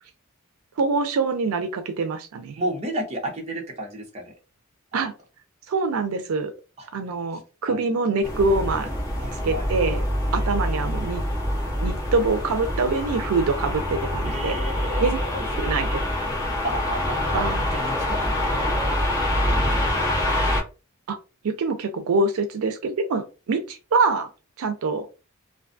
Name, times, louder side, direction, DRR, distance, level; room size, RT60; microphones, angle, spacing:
voice 1, 0.8-2.6 4.9-5.1 5.7-6.5 6.9-8.9 9.4-10.0 10.3-11.2 11.8-14.6 15.0-15.2 15.6-16.0 17.3-17.6 21.1-21.2 21.4-24.3 24.6-25.1, right 3 dB, 85° right, 0.4 m, -24 dB
voice 2, 2.6-4.4 4.9-5.1 6.8-6.9 7.3-7.4 7.7-7.9 9.1-9.7 14.2-15.5 16.6-17.4 17.7-18.8, right 1 dB, 30° right, 0.7 m, -32 dB
sound 1, 8.2-20.6, left 1 dB, 20° left, 1.2 m, -25 dB
2.5 x 2.2 x 2.5 m
head